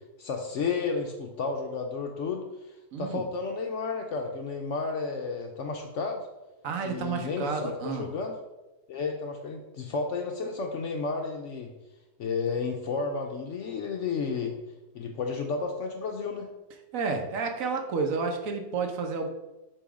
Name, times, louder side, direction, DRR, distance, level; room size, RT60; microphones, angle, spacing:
voice 1, 0.2-2.4 3.0-6.2 6.8-8.4 8.9-11.7 12.2-14.6 14.9-16.5, left 4 dB, 65° left, 3 dB, 0.7 m, -32 dB
voice 2, 2.9-3.2 6.6-8.1 16.9-19.3, right 4 dB, 60° right, 4 dB, 1.1 m, -30 dB
6.9 x 3.0 x 4.8 m, 1.0 s
omnidirectional pair, 1.7 m